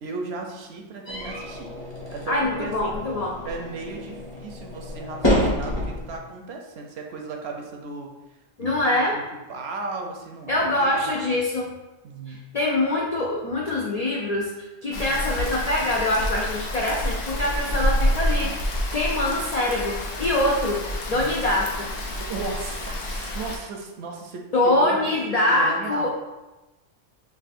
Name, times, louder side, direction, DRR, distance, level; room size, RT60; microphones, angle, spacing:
voice 1, 0.0-1.7 2.1-3.0 3.4-8.7 9.1-9.2 9.5-11.1 12.0-12.4 14.9-15.2 21.1-21.3 22.1-26.1, right 3 dB, 65° right, 2 dB, 0.7 m, -36 dB
sound 1, 1.1-6.2, equal, 25° left, 0.9 m, -28 dB
voice 2, 2.3-3.4 8.6-9.2 10.5-11.7 12.3-14.5 14.8-21.9 24.5-26.1, left 1 dB, 85° left, -3 dB, 0.3 m, -24 dB
Rain, 14.9-23.6, left 1 dB, 60° left, 0.7 m, -28 dB
5.4 x 2.4 x 2.5 m, 1.1 s
omnidirectional pair, 1.3 m